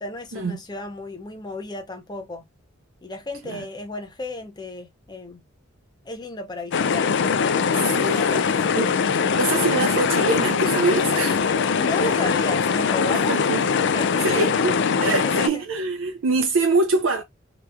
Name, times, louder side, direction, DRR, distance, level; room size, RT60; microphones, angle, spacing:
voice 1, 0.0-2.4 3.0-5.4 6.0-7.1 8.1-8.8 9.2-9.4 11.7-13.4 13.9-14.4 15.1-15.6, left 2 dB, 20° left, 0.6 m, -33 dB
sound 1, 6.7-15.5, left 6 dB, 60° left, 0.4 m, -22 dB
voice 2, 7.7-8.9 9.4-11.5 12.0-12.1 13.1-13.6 14.2-14.7 15.0-17.2, right 3 dB, 70° right, 0.5 m, -24 dB
2.9 x 2.4 x 3.4 m
head